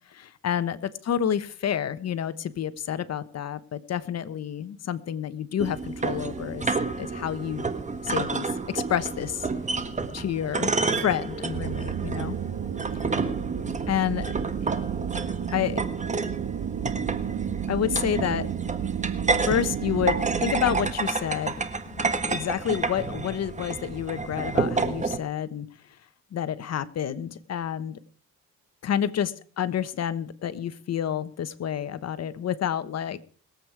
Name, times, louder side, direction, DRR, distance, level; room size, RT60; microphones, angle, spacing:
voice 1, 0.1-6.7 7.0-7.7 8.0-9.5 10.1-12.4 13.9-14.3 14.6-14.7 15.5-15.8 17.7-18.5 19.4-21.5 22.0-25.7 26.3-28.0 28.8-33.2, left 9 dB, 55° left, 14 dB, 1.2 m, -29 dB
sound 1, 5.6-25.2, right 4 dB, 25° right, 1.5 m, -30 dB
sound 2, 11.5-20.9, right 9 dB, 60° right, 1.4 m, -32 dB
21.5 x 8.3 x 4.7 m, 0.43 s
cardioid pair, 90°, 30 cm